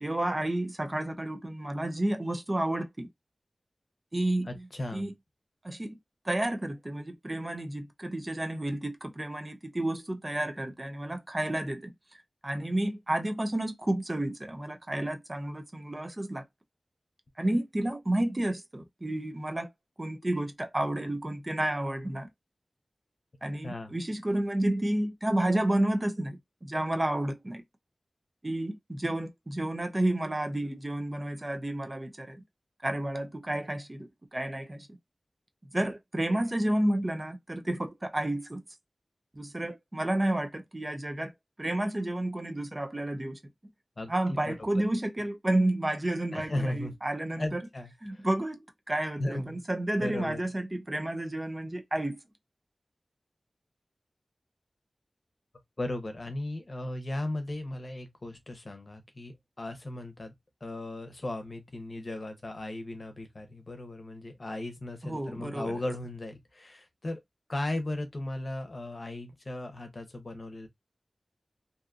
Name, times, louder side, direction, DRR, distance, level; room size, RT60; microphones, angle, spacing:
voice 1, 0.0-3.1 4.1-4.7 4.9-5.1 5.6-6.0 6.2-11.9 12.4-16.5 17.4-19.7 20.0-22.3 23.4-27.6 28.4-32.4 32.8-34.9 35.7-38.6 39.3-41.3 41.6-43.4 44.1-47.6 48.0-52.2 65.0-65.7, right 1 dB, 30° right, 0.6 m, -31 dB
voice 2, 4.5-5.1 23.6-23.9 44.0-44.1 44.5-44.8 46.3-46.9 47.4-48.3 49.2-49.6 50.0-50.4 55.8-60.3 60.6-67.2 67.5-70.7, left 1 dB, 55° left, 0.8 m, -36 dB
2.6 x 2.4 x 2.4 m
cardioid pair, 45°, 0 cm